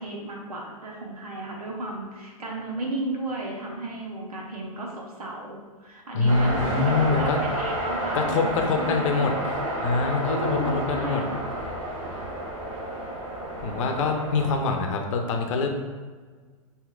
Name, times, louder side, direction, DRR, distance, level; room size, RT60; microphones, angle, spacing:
voice 1, 0.0-9.3 10.3-11.5, right 1 dB, 85° right, -1 dB, 1.1 m, -34 dB
voice 2, 6.1-7.4 8.1-9.3 9.8-11.2 13.6-15.7, left 4 dB, 55° left, 3 dB, 0.7 m, -24 dB
sound 1, 6.3-14.6, right 1 dB, 60° right, 1.0 m, -30 dB
6.2 x 2.8 x 2.4 m, 1.5 s
hypercardioid pair, 125°, 19 cm